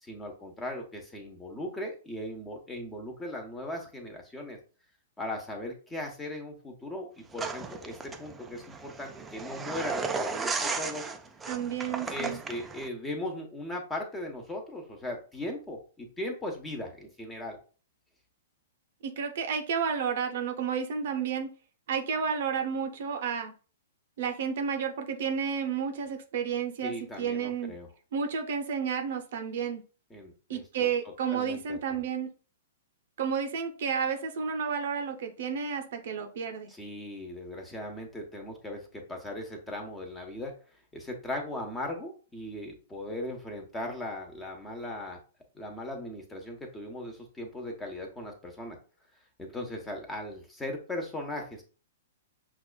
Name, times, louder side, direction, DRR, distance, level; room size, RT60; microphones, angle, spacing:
voice 1, 0.0-4.6 5.2-11.1 12.1-17.6 26.8-27.9 30.1-30.9 31.3-32.0 36.7-40.5 40.9-45.2 45.5-48.8 49.4-51.6, left 1 dB, 10° left, 2 dB, 1.0 m, -38 dB
sound 1, 7.4-12.9, right 4 dB, 15° right, 0.4 m, -35 dB
voice 2, 11.5-12.4 19.0-21.5 21.9-23.5 24.2-27.7 28.1-29.8 30.5-32.3 33.2-36.7, right 6 dB, 65° right, 5 dB, 0.6 m, -31 dB
5.9 x 2.4 x 2.2 m, 0.36 s
hypercardioid pair, 125°, 0 cm